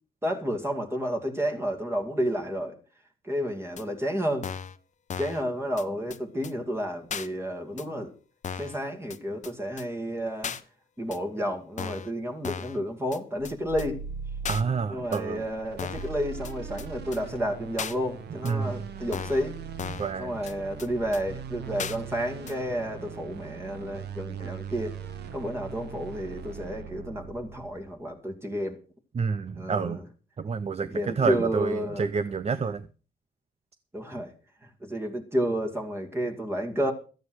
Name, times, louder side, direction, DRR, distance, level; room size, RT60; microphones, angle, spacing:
voice 1, 0.2-2.8 3.2-4.5 5.2-8.1 8.6-10.5 11.0-14.0 14.9-19.5 20.2-25.0 25.3-28.8 29.6-30.0 30.8-32.1 32.5-32.7 33.9-34.3 34.6-36.9, equal, 15° right, 2.4 m, -31 dB
sound 1, 3.8-3.9 4.4-4.8 5.1-5.4 5.8-5.9 6.1-6.2 6.4-6.5 7.1-7.3 7.8-7.9 8.4-8.8 9.1-9.2 9.4-9.5 9.8-9.9 10.4-10.6 11.1-11.2 11.8-12.1 12.4-12.8 13.1-13.2 13.4-13.5 13.8-13.9 14.4-14.6 15.1-15.2 15.8-16.1 16.4-16.5 16.8-16.9 17.1-17.2 17.8-17.9 18.4-18.5 19.1-19.4 19.8-20.1 20.5-20.6 20.8-20.9 21.1-21.2 21.8-22.0 22.5-22.6, left 7 dB, 45° left, 1.0 m, -35 dB
sound 2, 13.4-27.9, right 6 dB, 85° right, 1.4 m, -40 dB
voice 2, 14.5-15.4 18.4-18.8 20.0-20.4 29.1-30.0 30.4-32.8, right 5 dB, 40° right, 0.8 m, -28 dB
13.5 x 9.3 x 6.3 m
cardioid pair, 105°, 17 cm